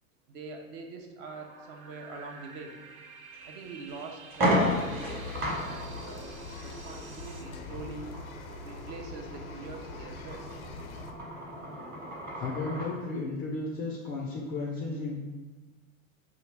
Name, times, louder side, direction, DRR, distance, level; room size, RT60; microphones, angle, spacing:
voice 1, 0.3-2.8 3.4-5.3 5.6-6.3 6.6-8.1 8.6-10.4, right 4 dB, 40° right, 3 dB, 0.5 m, -44 dB
sound 1, 1.2-7.4, right 4 dB, 75° right, 0.7 m, -50 dB
sound 2, 3.3-3.4 3.9-4.0 4.3-13.0, equal, 20° right, 1.0 m, -34 dB
sound 3, 4.5-11.1, left 4 dB, 85° left, 0.5 m, -44 dB
voice 2, 12.4-15.2, left 3 dB, 25° left, -2 dB, 0.3 m, -34 dB
4.7 x 2.4 x 3.2 m, 1.2 s
hypercardioid pair, 100°, 42 cm